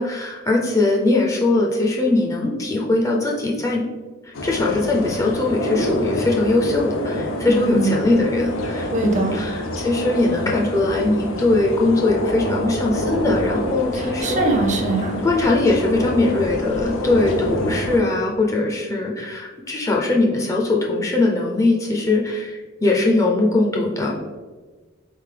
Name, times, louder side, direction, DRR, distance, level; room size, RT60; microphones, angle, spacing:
voice 1, 0.0-3.8 4.3-14.4 15.2-24.2, left 2 dB, 15° left, -2 dB, 0.4 m, -20 dB
sound 1, 4.3-18.0, left 1 dB, 75° left, 0.6 m, -27 dB
voice 2, 7.4-8.0 8.9-9.4 14.0-15.2, right 2 dB, 35° right, 3 dB, 0.5 m, -22 dB
3.9 x 3.3 x 3.7 m, 1.4 s
head